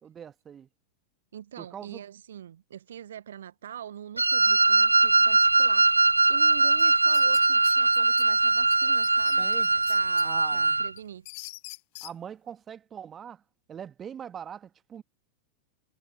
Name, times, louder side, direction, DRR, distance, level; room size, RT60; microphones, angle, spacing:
voice 1, 0.0-0.7 1.6-2.0 9.4-9.7 10.2-10.7 12.0-13.4 13.7-15.0, right 8 dB, 25° right, 2.0 m, -42 dB
voice 2, 1.3-5.9 6.3-11.2, right 10 dB, 65° right, 1.2 m, -43 dB
Wind instrument woodwind instrument, 4.2-10.9, right 3 dB, 80° right, 0.3 m, -21 dB
sound 1, 6.8-8.3 8.7-8.8 9.0-10.3 10.7-12.1, left 28 dB, 45° left, 1.4 m, -43 dB
figure-of-eight pair, 90°, 0 cm